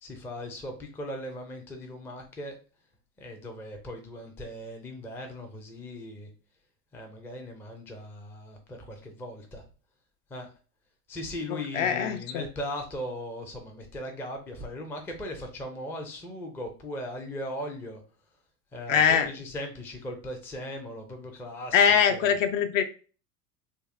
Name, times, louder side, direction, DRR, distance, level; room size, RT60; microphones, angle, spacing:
voice 1, 0.0-2.6 3.2-6.3 6.9-9.6 10.3-10.5 11.1-18.0 18.7-22.3, left 1 dB, 5° left, 0.3 m, -38 dB
voice 2, 11.5-12.5 18.9-19.3 21.7-22.8, left 7 dB, 55° left, 0.6 m, -23 dB
3.5 x 2.5 x 2.4 m
hypercardioid pair, 85°, 48 cm